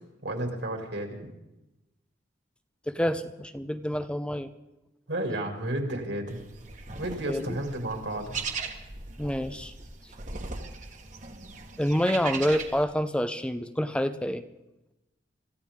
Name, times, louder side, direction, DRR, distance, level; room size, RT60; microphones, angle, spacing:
voice 1, 0.2-1.2 5.1-6.4 7.0-8.4, right 1 dB, 70° right, 3 dB, 2.7 m, -32 dB
voice 2, 2.9-4.5 7.3-7.6 9.2-9.7 11.8-14.4, equal, 5° left, 10 dB, 0.6 m, -27 dB
sound 1, 6.3-12.8, right 4 dB, 40° right, 1.5 m, -39 dB
25.5 x 15.5 x 3.7 m, 0.95 s
head